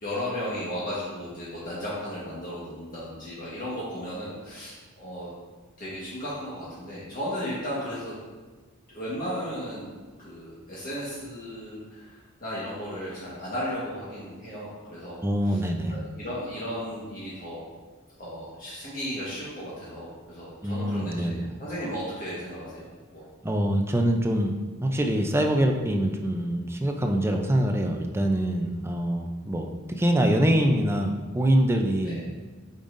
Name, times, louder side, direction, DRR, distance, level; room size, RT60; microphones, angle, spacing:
voice 1, 0.0-5.3 5.8-8.1 8.9-9.9 10.2-15.6 15.9-17.6 18.2-23.2 32.0-32.2, equal, 40° left, -8 dB, 1.4 m, -35 dB
voice 2, 15.2-15.9 20.6-21.4 23.4-24.5 24.8-32.2, right 1 dB, 10° right, 3 dB, 0.5 m, -24 dB
8.8 x 5.3 x 2.6 m, 1.4 s
head